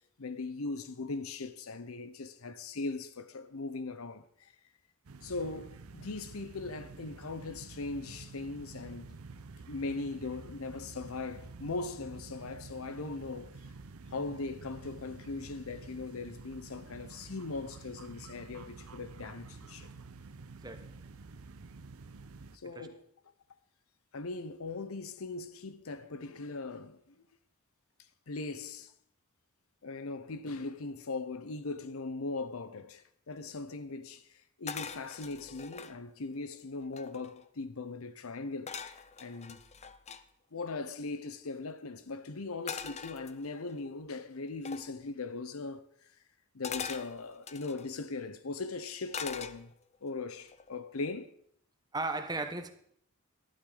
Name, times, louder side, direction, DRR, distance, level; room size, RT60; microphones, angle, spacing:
voice 1, 0.2-4.5 5.2-9.2 9.7-13.5 14.1-19.9 22.5-23.0 24.1-27.2 28.3-28.9 29.8-38.8 39.2-39.6 40.5-45.8 46.5-49.7 50.0-51.3, left 3 dB, 80° left, 0.8 m, -39 dB
sound 1, 5.0-22.6, right 3 dB, 90° right, 0.7 m, -49 dB
sound 2, 34.7-36.0 36.5-36.6 36.8-37.5 38.7-40.2 42.7-43.7 44.7-44.9 46.6-47.9 49.1-50.0 50.4-50.7, left 6 dB, 30° left, 0.6 m, -42 dB
voice 2, 51.9-52.7, right 3 dB, 20° right, 1.0 m, -35 dB
12.0 x 11.5 x 3.9 m
head